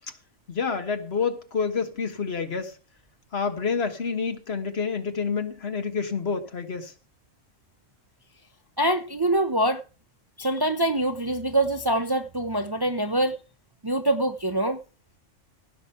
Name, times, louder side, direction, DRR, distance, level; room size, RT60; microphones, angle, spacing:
voice 1, 0.5-2.7 3.3-6.9, left 5 dB, 55° left, 1.6 m, -28 dB
voice 2, 8.8-9.8 10.4-13.4 13.8-14.8, right 1 dB, 20° right, 0.7 m, -24 dB
16.5 x 6.2 x 5.7 m
omnidirectional pair, 1.3 m